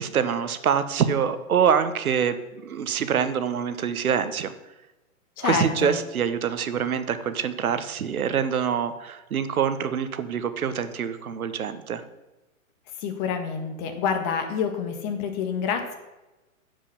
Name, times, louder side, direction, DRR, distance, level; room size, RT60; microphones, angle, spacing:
voice 1, 0.0-2.3 2.6-4.5 5.4-12.0, right 7 dB, 80° right, 11 dB, 1.2 m, -25 dB
voice 2, 5.4-6.0 13.0-16.0, left 6 dB, 30° left, 6 dB, 1.6 m, -27 dB
10.5 x 5.5 x 7.0 m, 1.1 s
hypercardioid pair, 140°, 42 cm